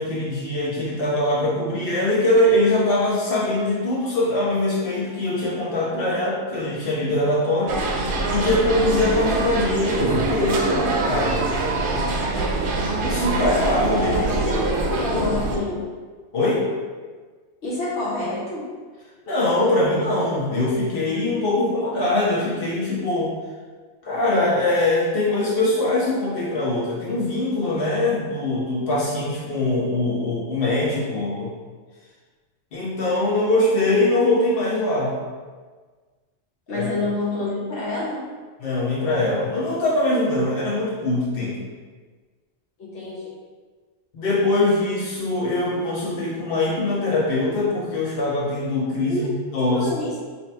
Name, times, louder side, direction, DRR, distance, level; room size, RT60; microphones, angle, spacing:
voice 1, 0.0-7.7 8.3-11.4 13.0-14.1 14.5-14.6 16.3-16.6 19.3-23.3 24.0-31.5 32.7-35.2 36.7-36.9 38.6-41.6 44.1-49.3 49.5-49.9, left 2 dB, 55° left, -6 dB, 1.2 m, -22 dB
sound 1, 7.7-15.6, right 2 dB, 60° right, 0.6 m, -24 dB
voice 2, 13.9-15.8 17.6-18.7 36.7-38.2 42.8-43.3 49.1-50.2, left 2 dB, 75° left, -7 dB, 1.0 m, -28 dB
2.8 x 2.8 x 4.3 m, 1.4 s
omnidirectional pair, 1.2 m